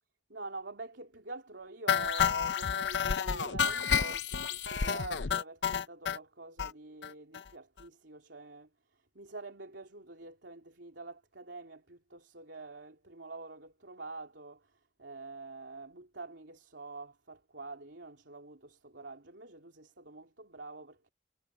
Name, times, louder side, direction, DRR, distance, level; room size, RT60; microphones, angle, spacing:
voice 1, 0.3-21.1, right 3 dB, 85° right, 3.3 m, -46 dB
sound 1, 1.9-6.2 6.6-6.7 7.0-7.1 7.3-7.5 7.8-7.9, left 7 dB, 80° left, 0.7 m, -30 dB
head